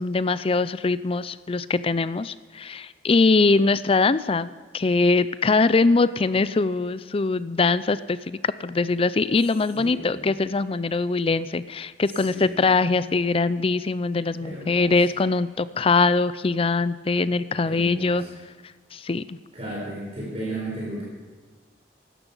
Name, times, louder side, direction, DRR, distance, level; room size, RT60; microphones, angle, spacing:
voice 1, 0.0-18.2 18.9-19.4, left 3 dB, 35° left, 15 dB, 0.5 m, -22 dB
voice 2, 9.8-10.2 12.3-12.7 14.4-15.0 17.6-18.3 19.5-21.0, right 1 dB, 35° right, -5 dB, 4.5 m, -34 dB
16.0 x 12.0 x 5.5 m, 1.4 s
head